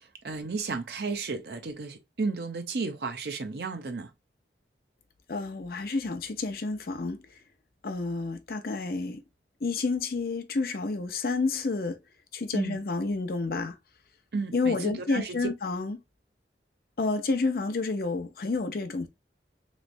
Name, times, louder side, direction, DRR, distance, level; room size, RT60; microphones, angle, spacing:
voice 1, 0.2-4.1 12.5-12.8 14.3-15.4, right 4 dB, 65° right, 0.6 m, -33 dB
voice 2, 5.3-7.2 7.8-9.2 9.6-12.0 12.3-13.8 14.5-16.0 17.0-19.1, left 3 dB, 55° left, 0.6 m, -29 dB
3.1 x 3.1 x 2.5 m
head